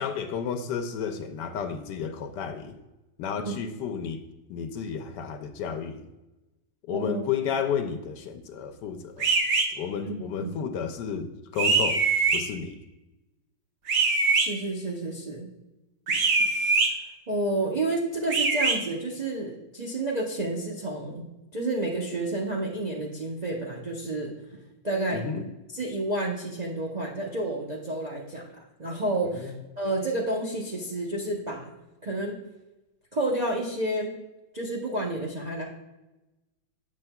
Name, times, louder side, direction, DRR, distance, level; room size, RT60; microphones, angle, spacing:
voice 1, 0.0-2.8 3.2-4.2 4.5-6.1 6.9-9.3 9.8-12.0 12.3-12.8 25.1-25.4 29.2-29.5, left 7 dB, 75° left, 7 dB, 1.1 m, -32 dB
voice 2, 6.9-7.2 10.0-10.6 14.3-15.5 17.3-21.2 21.5-24.3 24.8-25.2 25.7-28.5 28.8-31.7 32.0-32.3 33.1-34.1 34.5-35.6, right 2 dB, 70° right, -3 dB, 0.4 m, -30 dB
sound 1, 9.2-9.7 11.6-12.4 13.9-14.5 16.1-16.9 18.3-18.8, right 4 dB, 55° right, 1.1 m, -22 dB
7.4 x 6.8 x 2.2 m, 1.0 s
omnidirectional pair, 2.0 m